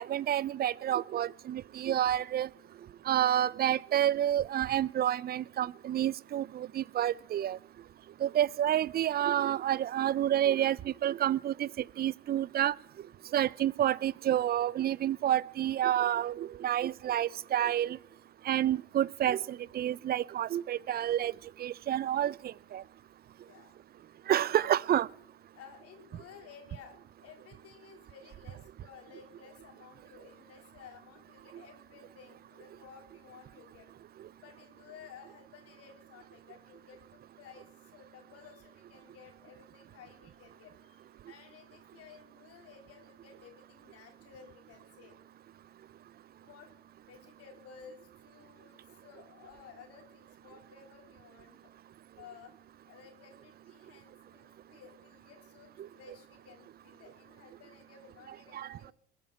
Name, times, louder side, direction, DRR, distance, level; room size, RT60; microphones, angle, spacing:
voice 1, 0.0-2.5 3.1-7.6 8.2-12.7 13.3-18.0 18.5-21.3 21.6-22.3 22.7-22.8 24.3-25.1 58.5-58.7, right 11 dB, 35° right, 0.5 m, -29 dB
voice 2, 23.4-23.7 25.5-33.9 34.4-45.1 46.3-46.7 47.1-51.7 52.2-52.6 52.8-58.9, left 7 dB, 55° left, 2.9 m, -55 dB
21.0 x 9.0 x 5.7 m
hypercardioid pair, 70°, 29 cm